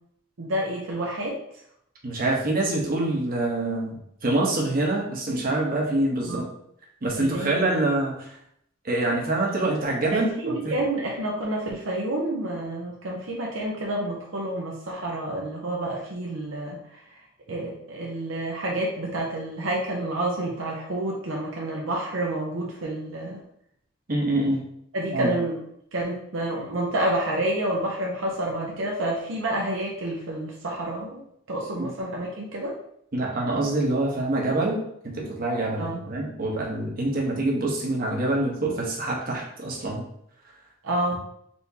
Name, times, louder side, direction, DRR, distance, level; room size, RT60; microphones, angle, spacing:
voice 1, 0.4-1.4 6.3-6.4 7.2-7.9 10.1-17.2 17.5-23.4 24.9-25.6 25.9-31.2 31.5-32.7 35.8-36.0 40.8-41.2, right 1 dB, 75° right, -2 dB, 0.7 m, -29 dB
voice 2, 2.0-6.5 7.0-8.4 8.8-10.7 24.1-24.6 25.1-25.3 31.7-31.9 33.1-34.8 35.0-40.0, right 2 dB, 45° right, -2 dB, 1.0 m, -25 dB
4.3 x 3.4 x 2.8 m, 0.71 s
head